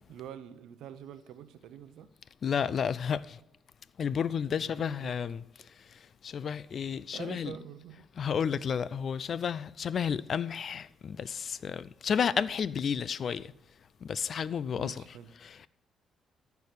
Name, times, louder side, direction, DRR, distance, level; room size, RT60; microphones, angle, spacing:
voice 1, 0.1-2.1 4.5-5.2 7.1-8.1 14.8-15.3, right 9 dB, 85° right, 0.7 m, -46 dB
voice 2, 2.4-3.4 4.0-5.4 6.2-7.5 8.2-13.5 14.0-15.0 15.4-15.7, left 7 dB, 55° left, 0.4 m, -31 dB
14.0 x 4.7 x 6.8 m
cardioid pair, 90°, 0 cm